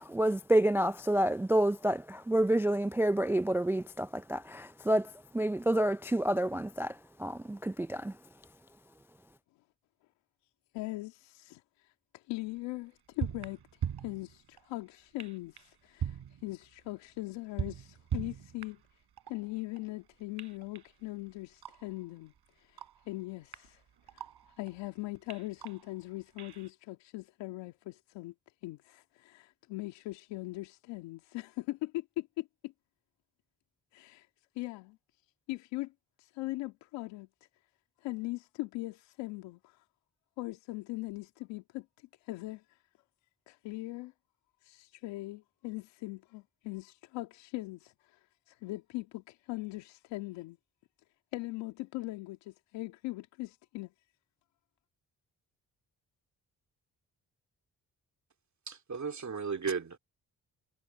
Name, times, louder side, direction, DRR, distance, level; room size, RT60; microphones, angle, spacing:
voice 1, 0.0-8.1, right 1 dB, 5° right, 0.3 m, -29 dB
voice 2, 10.7-13.6 14.0-18.8 19.3-22.3 22.6-23.8 24.1-24.3 24.6-28.3 28.6-32.7 33.9-34.3 34.6-35.0 35.5-35.9 36.2-37.3 38.0-39.8 40.4-41.9 42.2-42.8 43.5-44.1 44.6-50.6 51.3-53.9, left 20 dB, 85° left, 1.9 m, -40 dB
sound 1, 12.6-12.7 13.2-14.7 15.2-15.7 16.0-17.0 17.3-18.9 19.2-20.0 20.4-22.0 22.4-22.5 22.8-24.9 25.3-26.7, right 9 dB, 65° right, 5.0 m, -41 dB
voice 3, 58.7-60.0, right 5 dB, 40° right, 2.5 m, -35 dB
hypercardioid pair, 40°, 42 cm